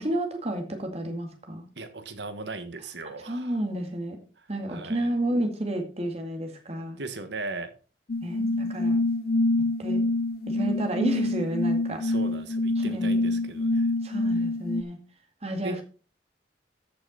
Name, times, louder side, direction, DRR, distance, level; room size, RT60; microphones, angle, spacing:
voice 1, 0.0-1.7 3.3-4.2 4.5-7.0 8.2-9.0 9.8-10.0 10.5-12.1 12.8-13.4 14.0-15.0 15.4-15.8, right 1 dB, 35° right, 2.2 m, -31 dB
voice 2, 1.8-3.6 4.7-5.1 7.0-7.7 12.0-13.9 15.6-15.8, right 3 dB, 75° right, 1.5 m, -38 dB
sound 1, 8.1-14.8, left 2 dB, 55° left, 0.5 m, -26 dB
13.5 x 6.0 x 4.1 m
head